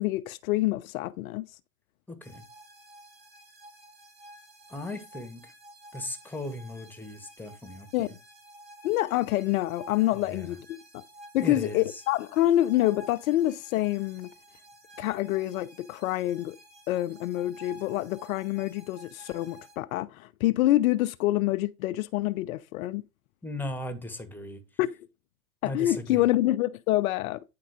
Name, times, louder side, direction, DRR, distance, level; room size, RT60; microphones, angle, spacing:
voice 1, 0.0-1.4 7.9-8.2 8.8-11.0 11.3-14.3 15.0-16.6 16.9-23.0 24.8-25.0 25.6-27.4, left 15 dB, 75° left, 0.6 m, -27 dB
voice 2, 2.1-2.4 4.7-5.5 5.9-8.1 10.3-10.5 11.4-12.0 23.4-24.6 25.6-26.2, left 1 dB, 5° left, 1.4 m, -37 dB
sound 1, 2.2-19.8, right 1 dB, 25° right, 2.5 m, -52 dB
9.5 x 3.8 x 5.0 m
hypercardioid pair, 110°, 42 cm